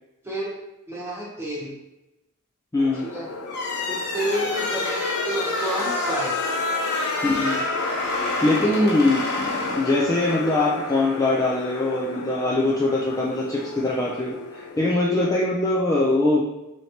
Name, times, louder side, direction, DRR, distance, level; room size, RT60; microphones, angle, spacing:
voice 1, 0.2-0.5 0.9-1.7 2.9-3.3 3.9-6.4 8.6-8.9, right 1 dB, 10° right, -5 dB, 1.1 m, -30 dB
voice 2, 2.7-3.0 7.2-7.6 8.1-16.4, left 2 dB, 15° left, -5 dB, 0.4 m, -22 dB
sound 1, 2.8-15.0, left 4 dB, 85° left, 0.4 m, -33 dB
sound 2, 3.5-10.4, left 2 dB, 50° left, 1.1 m, -28 dB
4.3 x 3.2 x 2.8 m, 0.96 s
head